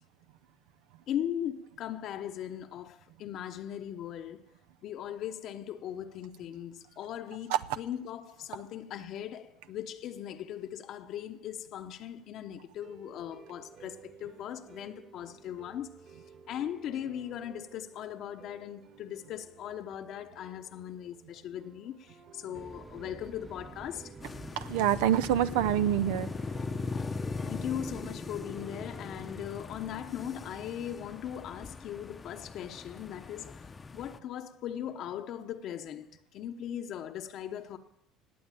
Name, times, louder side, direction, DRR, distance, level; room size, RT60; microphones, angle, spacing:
voice 1, 1.1-4.4 4.8-15.9 16.5-24.1 27.4-36.1 36.3-37.8, left 10 dB, 60° left, 0.9 m, -39 dB
sound 1, 12.8-30.8, right 5 dB, 50° right, 2.5 m, -55 dB
sound 2, 22.5-28.2, right 3 dB, 15° right, 1.0 m, -48 dB
sound 3, 24.2-34.2, left 4 dB, 25° left, 0.7 m, -40 dB
voice 2, 24.6-26.3, right 11 dB, 90° right, 0.5 m, -26 dB
18.0 x 7.9 x 9.0 m
supercardioid pair, 100°, 0 cm